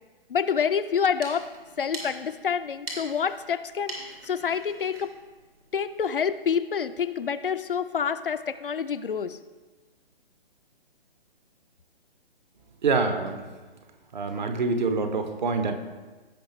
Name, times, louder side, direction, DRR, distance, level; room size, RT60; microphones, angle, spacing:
voice 1, 0.3-1.5 1.8-3.9 4.2-5.1 5.7-9.4, left 7 dB, 60° left, 11 dB, 0.5 m, -27 dB
sound 1, 0.9-6.2, right 2 dB, 70° right, 2.8 m, -43 dB
voice 2, 12.8-13.4 14.1-15.7, right 4 dB, 50° right, 7 dB, 1.1 m, -26 dB
16.5 x 5.7 x 3.3 m, 1.3 s
figure-of-eight pair, 130°, 30 cm